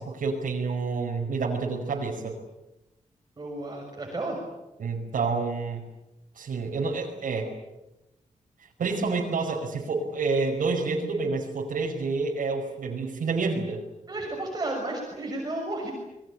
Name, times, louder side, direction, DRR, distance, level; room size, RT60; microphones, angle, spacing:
voice 1, 0.0-2.3 4.8-5.8 6.4-7.5 8.8-13.8, right 4 dB, 90° right, -2 dB, 5.3 m, -28 dB
voice 2, 3.4-4.4 14.1-15.9, right 2 dB, 30° right, 0 dB, 6.5 m, -32 dB
27.0 x 22.0 x 8.9 m, 0.96 s
wide cardioid pair, 160°, 13 cm